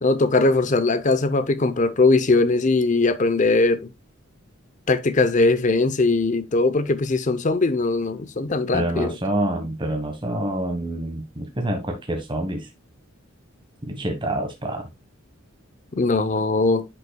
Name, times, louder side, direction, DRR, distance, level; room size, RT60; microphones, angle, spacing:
voice 1, 0.0-3.9 4.9-9.2 16.0-16.8, left 3 dB, 35° left, 0.6 m, -20 dB
voice 2, 8.7-12.7 13.8-14.8, right 1 dB, 25° right, 1.3 m, -27 dB
10.5 x 5.5 x 2.3 m
head